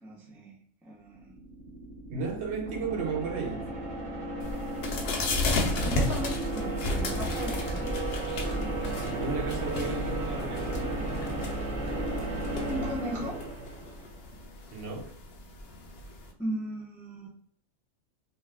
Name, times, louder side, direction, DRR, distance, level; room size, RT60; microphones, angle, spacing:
voice 1, 0.0-1.4 5.8-8.0 8.3-9.0 12.7-13.5 16.4-17.3, right 1 dB, ahead, 0.4 m, -37 dB
sound 1, 1.1-14.2, right 1 dB, 30° right, 0.7 m, -34 dB
voice 2, 2.1-3.7 8.8-11.2 14.7-15.1, right 5 dB, 65° right, 0.8 m, -34 dB
sound 2, 4.4-16.3, left 2 dB, 60° left, 0.7 m, -34 dB
2.4 x 2.4 x 3.3 m
omnidirectional pair, 1.3 m